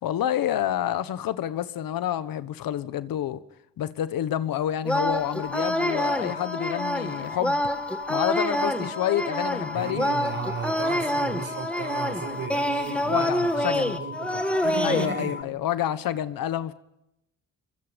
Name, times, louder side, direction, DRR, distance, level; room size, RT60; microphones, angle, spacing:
voice 1, 0.0-3.4 3.8-7.6 8.1-10.1 13.1-14.0 14.8-16.7, left 11 dB, 70° left, 1.4 m, -28 dB
sound 1, 4.8-15.1, equal, 5° left, 1.7 m, -27 dB
sound 2, 5.4-15.4, left 6 dB, 45° left, 1.4 m, -38 dB
voice 2, 9.7-15.3, right 6 dB, 80° right, 6.3 m, -34 dB
28.0 x 25.0 x 5.3 m
cardioid pair, 110°, 35 cm